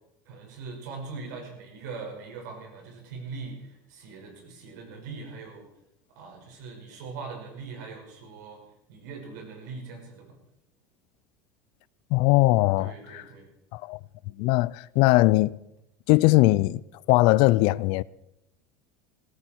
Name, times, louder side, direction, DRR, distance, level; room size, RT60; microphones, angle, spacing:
voice 1, 0.3-5.7 6.2-8.6 8.9-10.3 12.8-13.5, right 4 dB, 80° right, 5.7 m, -41 dB
voice 2, 12.1-13.2 13.7-14.0 14.4-15.5 16.1-16.8 17.1-18.0, left 20 dB, 60° left, 0.5 m, -20 dB
16.5 x 15.5 x 4.6 m
supercardioid pair, 120°, 9 cm